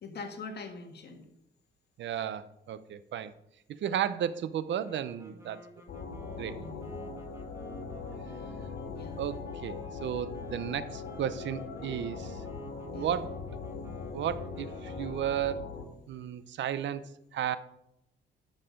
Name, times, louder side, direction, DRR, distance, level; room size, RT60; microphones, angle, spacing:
voice 1, 0.0-1.2 6.5-7.0 8.9-9.2 12.9-13.2, left 4 dB, 55° left, 5 dB, 1.6 m, -43 dB
voice 2, 2.0-3.3 3.8-5.6 6.4-6.6 9.2-12.4 12.9-13.4 14.1-15.7 16.1-17.0 17.3-17.6, right 10 dB, 65° right, 13 dB, 0.8 m, -33 dB
sound 1, 4.6-15.6, right 1 dB, 15° right, 2.2 m, -52 dB
sound 2, 5.9-15.9, left 4 dB, 75° left, 2.1 m, -41 dB
11.0 x 6.6 x 5.2 m, 0.82 s
cardioid pair, 90°, 20 cm